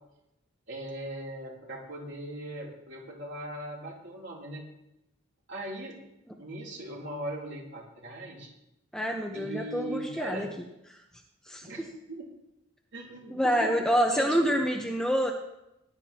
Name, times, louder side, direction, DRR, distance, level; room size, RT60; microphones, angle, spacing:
voice 1, 0.7-4.7 5.5-6.0 6.4-8.5 9.3-10.4 11.6-12.3 12.9-13.7 14.1-14.6, right 1 dB, 55° right, -3 dB, 3.4 m, -39 dB
voice 2, 8.9-10.5 10.9-11.0 11.5-11.9 13.3-15.3, equal, 5° left, 1 dB, 1.0 m, -27 dB
18.5 x 11.5 x 3.0 m, 0.88 s
head